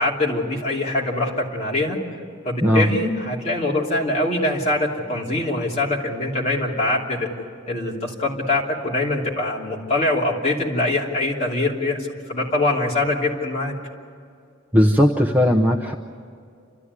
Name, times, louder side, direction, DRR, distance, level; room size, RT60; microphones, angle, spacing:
voice 1, 0.0-2.0 2.4-7.3 7.7-13.7, left 2 dB, 30° left, -3 dB, 3.0 m, -23 dB
voice 2, 14.7-15.9, equal, 10° right, 2 dB, 0.8 m, -17 dB
29.5 x 13.0 x 9.6 m, 2.3 s
head